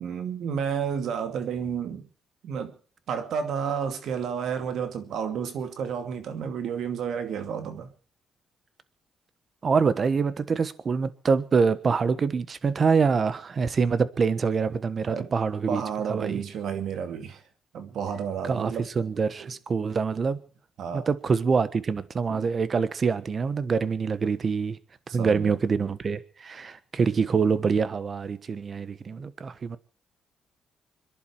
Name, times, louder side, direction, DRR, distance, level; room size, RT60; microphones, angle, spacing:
voice 1, 0.0-2.1 2.4-2.7 3.1-7.9 15.1-15.3 15.7-17.4 17.7-18.9 19.4-19.5 20.8-21.1 22.3-22.5 25.2-25.6, right 7 dB, 75° right, 2.4 m, -31 dB
voice 2, 9.6-15.8 16.1-16.4 18.4-20.4 20.9-24.8 25.1-29.8, right 5 dB, 45° right, 1.3 m, -25 dB
25.5 x 11.0 x 4.7 m
cardioid pair, 85°, 0 cm